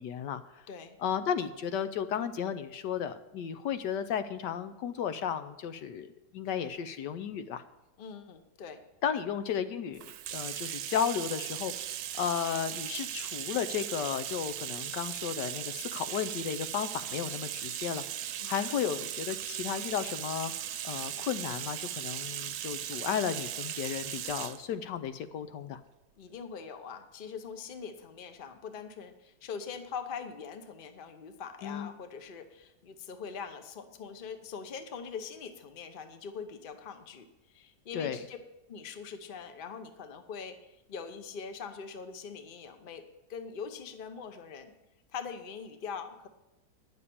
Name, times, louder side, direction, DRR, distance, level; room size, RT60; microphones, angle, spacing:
voice 1, 0.0-0.6 1.0-7.6 9.0-11.7 12.2-18.0 18.5-20.5 20.8-25.8 31.6-31.9 37.9-38.2, left 8 dB, 75° left, 10 dB, 1.2 m, -34 dB
voice 2, 8.0-8.8 18.4-18.5 26.2-38.4 38.7-43.0 43.3-44.7 45.1-46.3, left 6 dB, 40° left, 8 dB, 0.8 m, -42 dB
Bathtub (filling or washing), 9.9-24.6, right 11 dB, 80° right, 1.3 m, -38 dB
9.9 x 6.9 x 8.5 m, 0.95 s
omnidirectional pair, 2.0 m